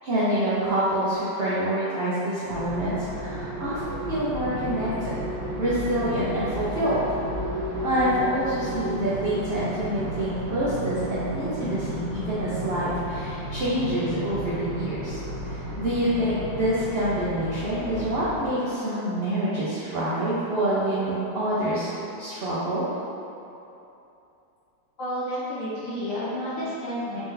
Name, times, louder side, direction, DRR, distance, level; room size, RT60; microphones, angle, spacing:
voice 1, 0.0-4.9 5.6-7.2 7.8-15.2 15.5-21.9 22.2-22.8, right 1 dB, 90° right, -10 dB, 0.5 m, -26 dB
sound 1, 2.5-18.5, equal, 65° right, 1.5 m, -33 dB
voice 2, 25.0-27.2, equal, 65° left, -8 dB, 0.8 m, -30 dB
4.3 x 2.7 x 3.8 m, 2.8 s
omnidirectional pair, 2.1 m